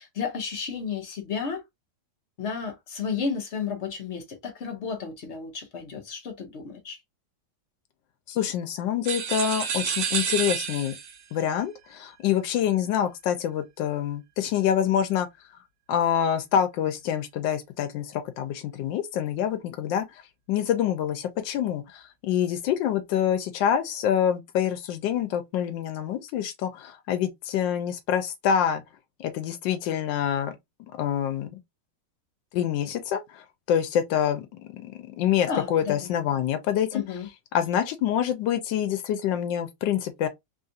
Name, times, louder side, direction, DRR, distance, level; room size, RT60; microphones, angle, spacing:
voice 1, 0.0-1.6 2.4-7.0 35.5-36.1 36.9-37.3, left 6 dB, 50° left, 0.8 m, -32 dB
voice 2, 8.3-10.9 11.3-15.3 15.9-20.2 20.5-28.8 29.2-30.5 30.9-31.6 32.5-37.0 37.5-40.3, left 9 dB, 90° left, 1.3 m, -26 dB
sound 1, 9.0-11.2, right 7 dB, 85° right, 1.4 m, -29 dB
3.4 x 2.4 x 2.6 m
omnidirectional pair, 2.0 m